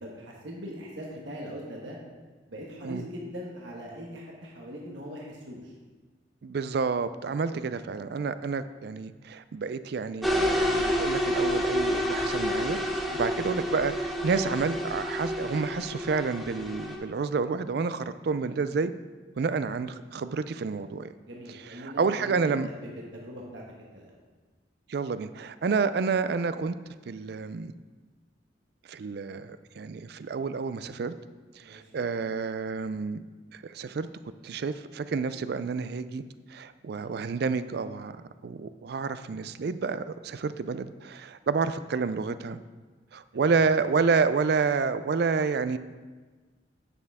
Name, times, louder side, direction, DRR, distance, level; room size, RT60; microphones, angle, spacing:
voice 1, 0.0-2.0 2.5-5.7 7.5-7.7 13.1-13.3 21.2-24.2 31.6-32.1 36.9-37.1 43.3-43.6, equal, 75° right, -2 dB, 1.2 m, -41 dB
voice 2, 6.4-18.9 19.4-21.1 21.8-22.7 24.9-26.8 27.1-27.7 28.9-31.1 31.6-33.2 33.5-34.1 34.4-36.2 36.5-38.2 38.4-42.6 43.1-45.8, right 5 dB, 55° right, 13 dB, 0.4 m, -29 dB
sound 1, 10.2-17.0, equal, ahead, 0.8 m, -29 dB
9.1 x 6.7 x 3.5 m, 1.4 s
head